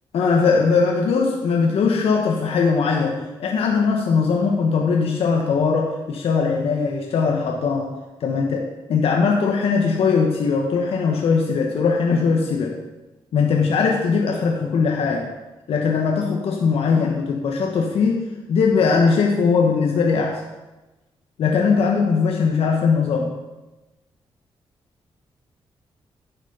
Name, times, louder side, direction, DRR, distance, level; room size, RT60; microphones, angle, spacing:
voice 1, 0.1-7.9 8.2-12.8 13.3-15.3 15.7-20.4 21.4-23.3, left 5 dB, 85° left, 0 dB, 1.2 m, -20 dB
10.5 x 6.3 x 5.5 m, 1.1 s
cardioid pair, 100°, 10 cm